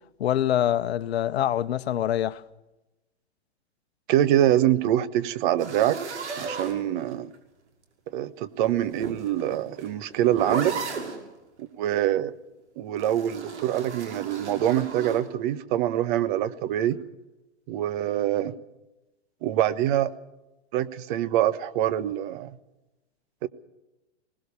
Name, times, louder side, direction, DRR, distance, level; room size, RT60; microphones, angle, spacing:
voice 1, 0.2-2.4, left 11 dB, 65° left, 1.1 m, -25 dB
voice 2, 4.1-6.0 6.4-7.3 8.1-10.7 11.6-12.3 12.8-17.0 17.7-18.5 19.4-20.1 20.7-22.6 23.4-23.5, right 12 dB, 45° right, 1.4 m, -25 dB
sound 1, 5.6-7.4 8.6-11.2 13.0-15.2, right 4 dB, 80° right, 6.0 m, -35 dB
21.5 x 19.5 x 7.0 m
hypercardioid pair, 125°, 34 cm